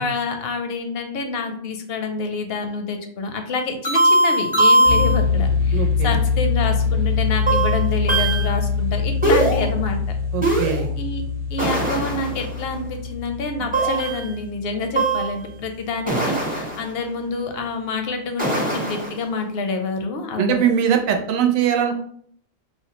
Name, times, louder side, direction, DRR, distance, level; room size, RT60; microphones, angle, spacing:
voice 1, 0.0-10.0 11.0-11.2 11.5-20.6, left 3 dB, 65° left, 6 dB, 0.6 m, -27 dB
sound 1, 3.8-5.2 7.5-8.5 9.2-9.6 10.4-10.8 11.6-12.6 13.7-14.3 14.9-15.4 16.1-16.9 18.4-19.2, right 1 dB, 10° right, 0.5 m, -20 dB
sound 2, 4.8-15.7, left 5 dB, 45° right, 0.9 m, -24 dB
voice 2, 5.7-6.1 10.3-10.9 20.4-21.9, right 8 dB, 80° right, 4 dB, 1.0 m, -21 dB
4.3 x 2.0 x 2.9 m, 0.63 s
omnidirectional pair, 1.4 m